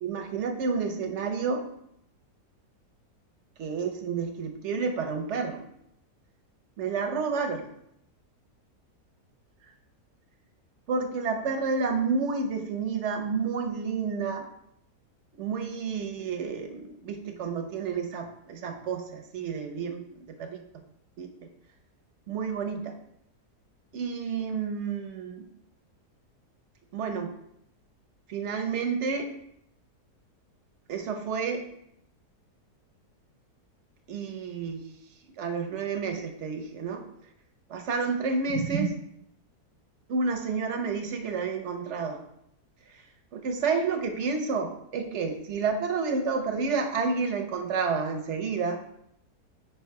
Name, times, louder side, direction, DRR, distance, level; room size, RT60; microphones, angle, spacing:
voice 1, 0.0-1.6 3.6-5.6 6.8-7.7 10.9-14.5 15.4-20.0 20.4-20.6 21.2-21.3 22.3-23.0 23.9-25.4 26.9-27.3 28.3-29.3 30.9-31.6 34.1-34.8 35.4-37.0 37.7-38.9 40.1-42.2 43.3-48.8, right 5 dB, 55° right, 4 dB, 0.9 m, -30 dB
4.8 x 4.7 x 4.6 m, 0.75 s
omnidirectional pair, 1.7 m